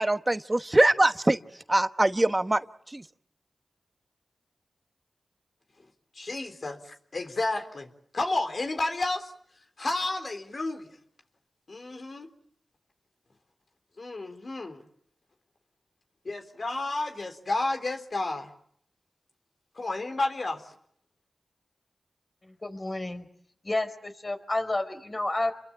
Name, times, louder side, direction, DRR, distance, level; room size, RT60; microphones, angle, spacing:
voice 1, 0.0-1.4 1.7-3.0, right 1 dB, 25° right, 10 dB, 1.1 m, -23 dB
voice 2, 6.1-9.3 9.8-10.9 11.7-12.3 14.0-14.8 16.2-18.5 19.8-20.7, left 2 dB, 60° left, 6 dB, 3.8 m, -31 dB
voice 3, 22.4-23.3 23.6-25.5, left 2 dB, 40° left, 6 dB, 4.9 m, -30 dB
30.0 x 22.5 x 8.7 m, 0.67 s
cardioid pair, 50°, 0 cm